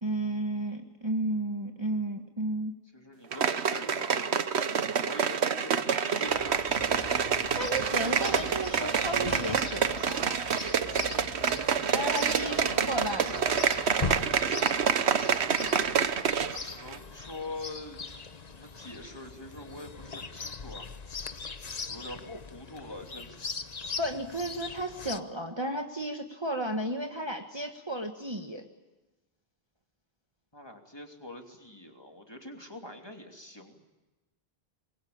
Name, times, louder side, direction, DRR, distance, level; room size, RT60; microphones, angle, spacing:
voice 1, 0.0-2.7 7.6-10.3 11.9-13.6 22.3-22.4 24.0-28.7, right 1 dB, 25° right, 3 dB, 1.5 m, -33 dB
voice 2, 2.9-4.5 5.0-6.7 11.0-11.3 12.3-12.9 16.6-18.0 18.5-20.9 21.9-23.5 30.5-33.8, left 1 dB, 25° left, 3 dB, 3.0 m, -44 dB
sound 1, 3.3-16.6 16.9-17.0, right 7 dB, 85° right, 1.3 m, -27 dB
Chirp tweet, 6.3-25.2, left 5 dB, 40° left, 1.0 m, -40 dB
25.5 x 22.0 x 8.7 m, 1.1 s
omnidirectional pair, 1.1 m